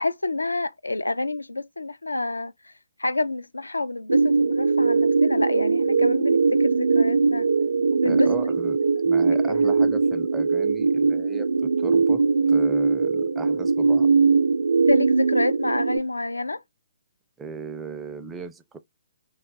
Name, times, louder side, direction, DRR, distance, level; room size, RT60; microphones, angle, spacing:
voice 1, 0.0-2.7 3.0-7.5 7.9-8.3 9.4-9.6 14.7-16.6, left 2 dB, 85° left, 0.3 m, -28 dB
sound 1, 4.1-16.0, right 4 dB, 80° right, 0.5 m, -21 dB
voice 2, 8.0-8.8 9.0-14.1 17.4-18.8, right 5 dB, 10° right, 0.4 m, -37 dB
2.3 x 2.1 x 3.9 m
figure-of-eight pair, 130°, 0 cm